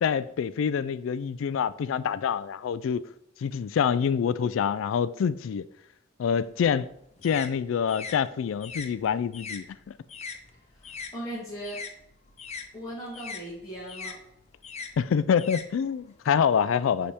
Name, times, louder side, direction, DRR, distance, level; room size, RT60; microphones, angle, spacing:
voice 1, 0.0-3.0 3.4-5.6 6.2-6.9 7.2-9.9 15.0-17.1, left 7 dB, 80° left, 0.3 m, -26 dB
sound 1, 6.4-11.1 11.4-16.3, left 5 dB, 35° left, 0.6 m, -41 dB
voice 2, 10.7-11.8 12.7-14.2, right 1 dB, 20° left, 2.2 m, -38 dB
9.6 x 3.5 x 4.3 m
head